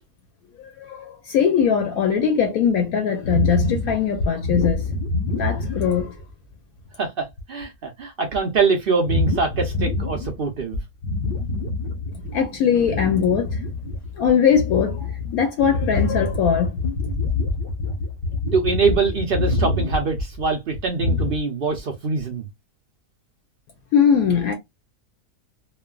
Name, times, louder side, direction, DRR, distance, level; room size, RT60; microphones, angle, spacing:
voice 1, 0.6-4.9 5.3-6.2 12.3-13.6 14.2-16.8 23.9-24.5, left 7 dB, 70° left, 1.0 m, -21 dB
sound 1, 3.2-6.3 6.8-6.9 7.3-7.6 9.1-10.4 10.7-12.5 12.8-21.4, left 2 dB, 55° left, 0.7 m, -26 dB
voice 2, 7.0-10.8 18.5-22.4, right 4 dB, 75° right, 0.5 m, -23 dB
3.1 x 2.2 x 2.2 m
omnidirectional pair, 1.7 m